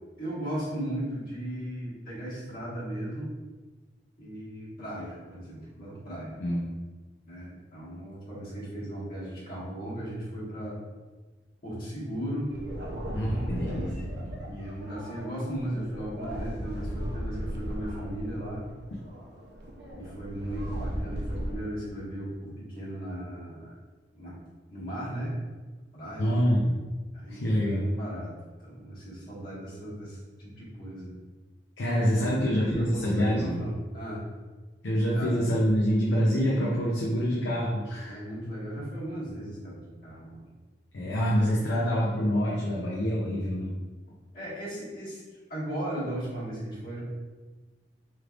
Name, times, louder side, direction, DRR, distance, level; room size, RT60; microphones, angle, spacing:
voice 1, 0.2-3.3 4.2-6.4 7.3-10.8 11.6-12.5 14.4-18.6 19.9-23.7 24.1-24.3 24.7-25.3 25.9-26.3 27.1-28.3 28.6-31.2 32.2-34.2 35.1-35.3 38.0-40.4 44.3-45.2 45.5-47.0, right 1 dB, 55° left, -9 dB, 1.5 m, -36 dB
sound 1, 12.5-21.5, equal, 60° right, 0.6 m, -36 dB
voice 2, 13.1-14.1 26.2-26.8 27.3-27.8 31.8-33.6 34.8-38.2 40.9-43.7, equal, 90° left, -5 dB, 0.6 m, -26 dB
3.3 x 3.2 x 2.4 m, 1.3 s
head